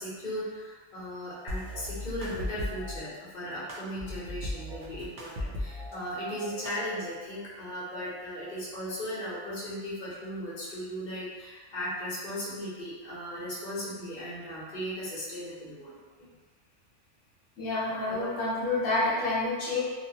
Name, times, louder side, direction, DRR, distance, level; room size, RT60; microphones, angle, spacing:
voice 1, 0.0-15.9 18.1-18.3, equal, 40° left, -9 dB, 1.0 m, -37 dB
sound 1, 1.5-3.0 3.7-6.0 6.3-7.3, left 1 dB, 60° right, 0.7 m, -37 dB
voice 2, 17.6-19.8, left 2 dB, 75° left, -9 dB, 1.2 m, -28 dB
2.6 x 2.3 x 2.8 m, 1.4 s
omnidirectional pair, 1.3 m